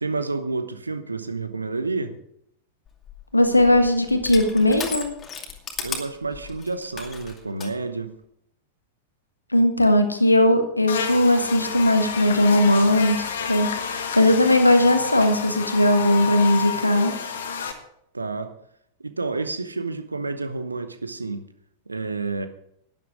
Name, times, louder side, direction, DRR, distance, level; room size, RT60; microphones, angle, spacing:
voice 1, 0.0-2.2 5.8-8.1 18.1-18.5 19.0-21.4 21.9-22.5, right 3 dB, 80° right, 11 dB, 0.9 m, -29 dB
Crushing, 2.9-7.7, left 5 dB, 25° left, 2.4 m, -36 dB
voice 2, 3.3-5.1 9.5-17.1, left 1 dB, 85° left, 6 dB, 1.5 m, -19 dB
Buzz, 10.9-17.7, left 6 dB, 65° left, 1.5 m, -30 dB
12.0 x 11.0 x 5.1 m, 0.73 s
figure-of-eight pair, 90°, 0 cm